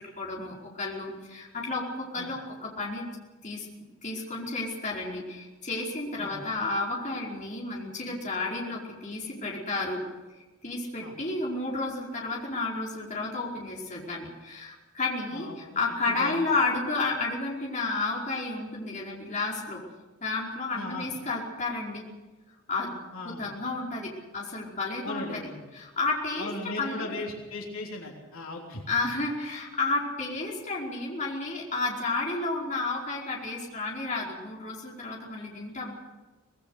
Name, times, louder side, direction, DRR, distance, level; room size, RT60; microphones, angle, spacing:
voice 1, 0.2-3.1 3.4-3.7 4.0-10.0 10.6-19.8 20.2-22.0 22.7-25.4 25.7-26.5 26.8-27.1 28.9-35.9, left 3 dB, 35° left, -3 dB, 4.9 m, -31 dB
voice 2, 15.3-16.4 20.7-21.1 23.1-23.5 25.0-25.6 26.4-28.8, left 2 dB, 70° left, 0 dB, 3.5 m, -38 dB
25.0 x 19.0 x 6.7 m, 1.2 s
head